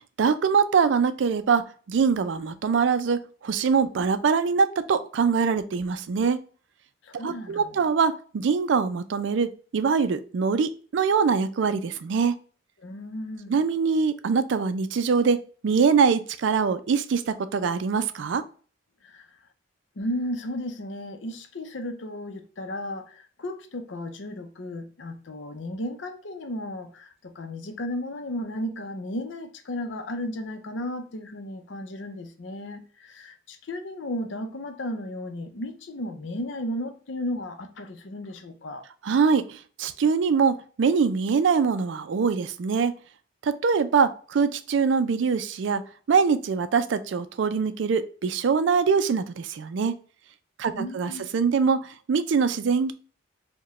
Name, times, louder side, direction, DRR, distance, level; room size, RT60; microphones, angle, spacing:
voice 1, 0.2-6.4 7.1-12.4 13.5-18.5 39.0-43.0 43.4-45.8 46.1-50.0 50.6-52.9, right 5 dB, 65° right, 0.4 m, -23 dB
voice 2, 7.0-7.9 12.8-13.6 19.0-19.3 20.0-38.8 50.7-51.3, left 1 dB, 65° left, 0.6 m, -34 dB
4.6 x 2.2 x 3.0 m
head